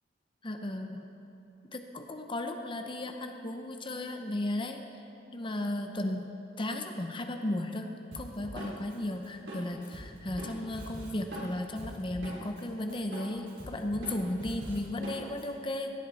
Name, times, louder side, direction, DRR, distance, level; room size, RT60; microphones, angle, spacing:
voice 1, 0.4-1.1 1.7-4.8 5.3-6.3 6.6-7.9 8.1-15.9, left 1 dB, 30° left, 5 dB, 0.7 m, -35 dB
Drum kit, 8.1-12.6 12.9-15.4, equal, 80° right, 3.6 m, -43 dB
17.5 x 11.5 x 4.1 m, 3.0 s
head